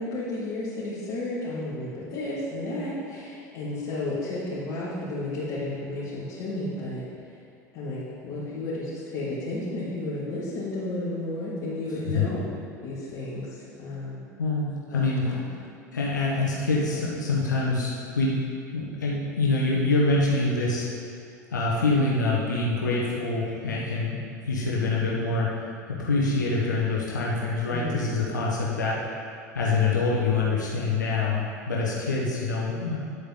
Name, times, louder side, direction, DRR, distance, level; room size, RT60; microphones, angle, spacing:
voice 1, 0.0-7.0 7.7-12.4 12.8-14.2 14.9-15.4 27.7-28.0, left 2 dB, 45° left, -10 dB, 2.5 m, -32 dB
voice 2, 14.4-15.2 15.9-18.4 18.7-20.9 21.5-29.0 29.5-33.0, left 3 dB, 80° left, -4 dB, 1.4 m, -25 dB
9.7 x 8.4 x 3.9 m, 2.3 s
figure-of-eight pair, 80°, 10 cm